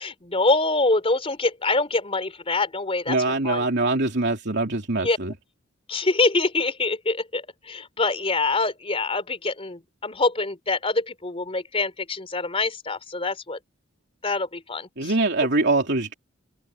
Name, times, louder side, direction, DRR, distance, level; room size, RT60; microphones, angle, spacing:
voice 1, 0.0-3.2 3.4-3.6 5.0-5.2 5.9-13.6 14.2-15.1, left 3 dB, 30° left, 3.6 m, -25 dB
voice 2, 3.1-5.3 15.0-16.1, right 2 dB, 60° right, 3.0 m, -23 dB
head